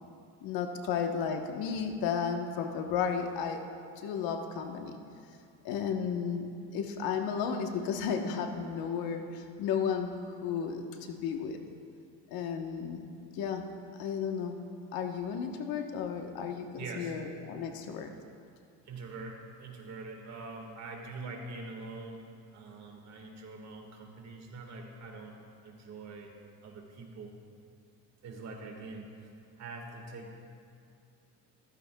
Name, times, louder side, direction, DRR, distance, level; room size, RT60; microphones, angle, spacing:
voice 1, 0.4-3.6 4.0-5.0 5.6-6.5 6.7-10.1 10.4-11.6 12.3-13.7 14.0-14.6 14.9-18.1, left 6 dB, 70° left, 4 dB, 1.2 m, -33 dB
voice 2, 16.8-17.1 18.9-22.2 22.5-25.3 25.6-26.3 26.6-27.3 28.2-29.1 29.6-30.4, right 3 dB, 45° right, 2 dB, 1.7 m, -44 dB
15.0 x 15.0 x 2.3 m, 2.4 s
cardioid pair, 135°, 37 cm